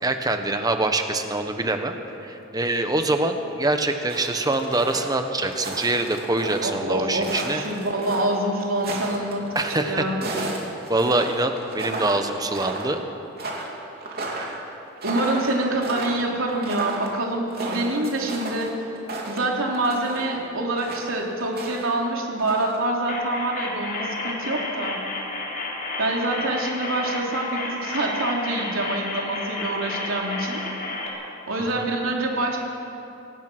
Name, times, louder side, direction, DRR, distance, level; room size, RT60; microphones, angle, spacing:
voice 1, 0.0-1.9 2.2-7.6 9.5-10.4 10.9-13.0 31.7-31.8, right 2 dB, 20° right, 6 dB, 1.4 m, -24 dB
sound 1, 4.1-6.7 7.1-9.8 10.2-12.3 12.5-13.0 13.4-20.3 20.8-21.9 22.2-22.8, right 2 dB, 50° right, 3.2 m, -33 dB
voice 2, 6.6-9.5 9.8-10.2 15.0-18.8 19.3-25.0 26.0-30.6 31.5-32.6, right 2 dB, 90° right, -1 dB, 3.3 m, -26 dB
sound 2, 23.1-31.1, left 2 dB, 45° left, 4.1 m, -31 dB
25.0 x 17.5 x 6.3 m, 2.9 s
head